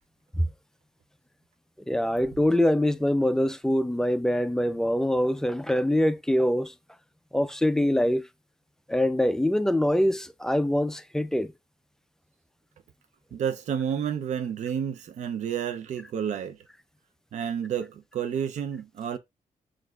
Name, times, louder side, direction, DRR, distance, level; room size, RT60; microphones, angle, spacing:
voice 1, 1.9-6.7 7.3-8.3 8.9-11.5, left 1 dB, 5° left, 0.3 m, -24 dB
voice 2, 13.3-16.6 17.3-19.2, right 8 dB, 60° right, 0.4 m, -30 dB
6.1 x 2.5 x 2.2 m
cardioid pair, 110°, 14 cm